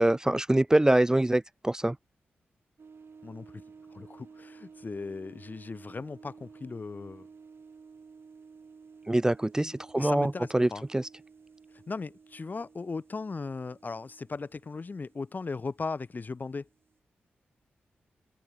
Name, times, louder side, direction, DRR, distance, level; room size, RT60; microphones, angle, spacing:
voice 1, 0.0-2.0 9.1-11.0, right 1 dB, 15° right, 0.3 m, -24 dB
sound 1, 2.8-17.0, right 5 dB, 60° right, 2.5 m, -53 dB
voice 2, 3.2-3.6 3.9-7.3 9.6-10.8 11.9-16.7, left 4 dB, 40° left, 0.6 m, -38 dB
supercardioid pair, 40°, 4 cm